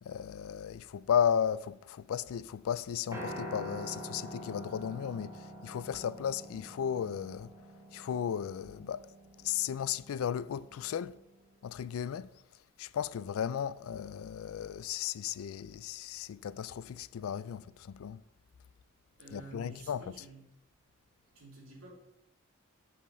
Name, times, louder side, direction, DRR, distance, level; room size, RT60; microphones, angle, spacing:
voice 1, 0.0-7.5 7.9-9.1 9.4-11.2 11.6-12.3 12.8-18.2 19.3-20.1, left 8 dB, 80° left, 0.3 m, -35 dB
Piano, 3.1-11.4, right 1 dB, 15° right, 1.4 m, -46 dB
voice 2, 19.2-20.4 21.3-21.9, right 3 dB, 80° right, 2.7 m, -51 dB
7.7 x 5.0 x 5.4 m
head